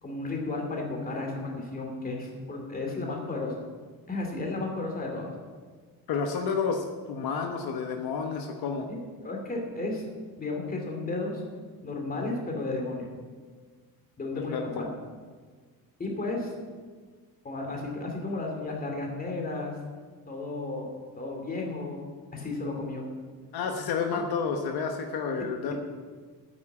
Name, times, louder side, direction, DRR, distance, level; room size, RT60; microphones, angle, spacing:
voice 1, 0.0-3.5 4.1-5.3 8.9-10.0 10.4-11.4 11.8-13.1 14.2-14.9 16.0-16.5 17.4-19.8 20.3-23.0 25.4-25.7, left 2 dB, 25° left, 1 dB, 2.6 m, -33 dB
voice 2, 6.1-8.9 14.5-14.6 23.5-25.7, left 5 dB, 70° left, 4 dB, 1.2 m, -30 dB
9.5 x 8.7 x 8.6 m, 1.5 s
cardioid pair, 165°, 38 cm